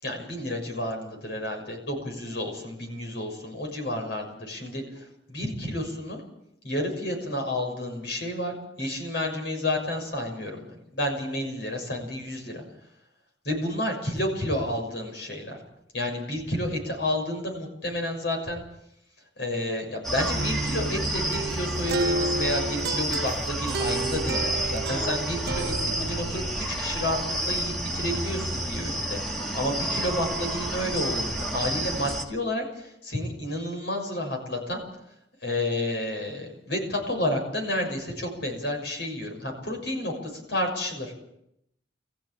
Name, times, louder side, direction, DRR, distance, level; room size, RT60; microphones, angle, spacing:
voice 1, 0.0-4.8 5.3-6.2 6.6-10.6 10.9-12.6 13.4-15.6 15.9-18.6 19.4-27.2 27.4-34.8 35.4-41.1, left 1 dB, 65° left, 2 dB, 6.6 m, -30 dB
sound 1, 20.0-32.2, right 1 dB, ahead, 2.3 m, -30 dB
sound 2, 20.3-26.5, right 2 dB, 60° right, 1.2 m, -31 dB
22.5 x 15.0 x 8.7 m, 0.77 s
head